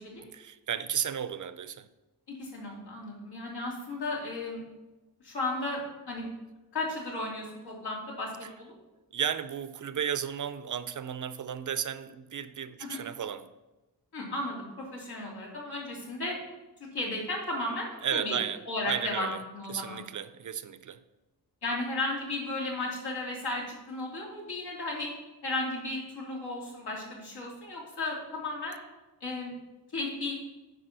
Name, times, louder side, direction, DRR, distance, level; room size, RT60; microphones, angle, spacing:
voice 1, 0.3-1.9 9.1-13.5 18.0-19.4 19.7-21.0, right 8 dB, 50° right, 13 dB, 0.5 m, -34 dB
voice 2, 2.4-4.6 5.2-5.8 6.1-6.3 6.7-8.7 12.9-13.0 14.1-16.4 16.9-18.4 18.7-19.3 19.5-20.0 21.6-25.1 25.4-28.8 29.2-29.5 29.9-30.4, left 2 dB, 75° left, -3 dB, 3.2 m, -34 dB
10.0 x 4.9 x 6.7 m, 1.1 s
wide cardioid pair, 150°, 39 cm